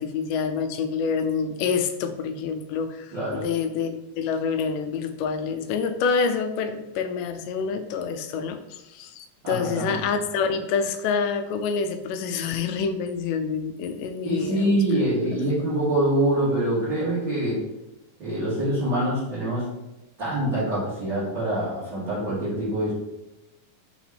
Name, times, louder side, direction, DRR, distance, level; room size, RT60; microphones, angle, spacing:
voice 1, 0.0-14.8, left 5 dB, 90° left, 8 dB, 2.2 m, -27 dB
voice 2, 3.1-3.4 9.4-10.0 14.2-17.6 18.2-19.6 20.2-22.9, right 1 dB, 40° right, -12 dB, 2.6 m, -25 dB
5.9 x 5.0 x 3.4 m, 0.96 s
omnidirectional pair, 3.7 m